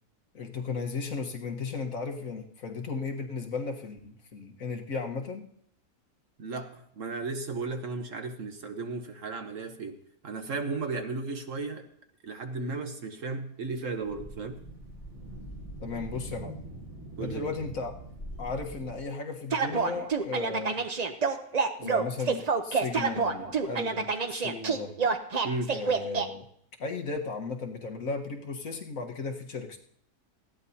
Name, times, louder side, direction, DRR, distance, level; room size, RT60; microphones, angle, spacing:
voice 1, 0.3-5.4 15.8-16.6 17.2-17.9 18.4-20.8 21.8-25.0 25.7-26.4 26.8-29.8, left 4 dB, 60° left, 2 dB, 1.8 m, -35 dB
voice 2, 6.4-11.9 12.2-14.6 17.2-17.5 21.4-21.8 25.4-25.8, right 3 dB, 55° right, 6 dB, 1.4 m, -35 dB
sound 1, 14.0-19.0, right 1 dB, 35° left, 4.0 m, -42 dB
sound 2, 19.5-26.3, right 5 dB, 40° right, 0.6 m, -27 dB
19.5 x 15.0 x 2.8 m, 0.66 s
omnidirectional pair, 1.7 m